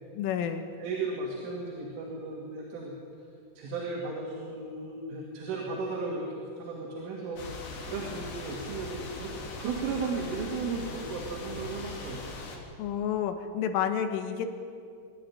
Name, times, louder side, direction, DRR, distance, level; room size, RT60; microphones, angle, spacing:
voice 1, 0.2-0.7 12.8-14.5, left 9 dB, 80° left, 7 dB, 3.8 m, -30 dB
voice 2, 0.8-2.9 3.6-6.3 6.6-9.3 9.6-12.2, right 4 dB, 75° right, -2 dB, 4.9 m, -35 dB
sound 1, 7.4-12.6, left 3 dB, 65° left, 4.7 m, -40 dB
25.0 x 13.0 x 9.9 m, 2.3 s
omnidirectional pair, 5.7 m